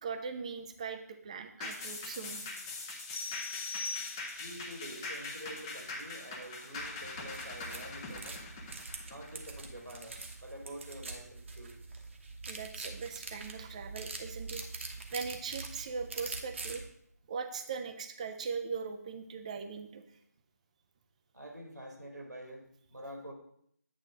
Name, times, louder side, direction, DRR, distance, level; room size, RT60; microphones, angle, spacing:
voice 1, 0.0-2.4 12.5-14.7 15.1-16.8 17.3-20.0, right 5 dB, 25° right, 7 dB, 0.5 m, -40 dB
sound 1, 1.6-10.3 10.7-10.8, left 3 dB, 15° left, 0.7 m, -42 dB
sound 2, 3.1-4.7, left 4 dB, 40° left, 1.0 m, -40 dB
voice 2, 4.4-8.5 9.1-11.8 21.3-23.3, right 1 dB, 90° right, 1 dB, 2.2 m, -47 dB
sound 3, 6.7-16.9, right 3 dB, 45° right, 1.0 m, -44 dB
8.9 x 3.2 x 6.1 m, 0.68 s
figure-of-eight pair, 155°, 9 cm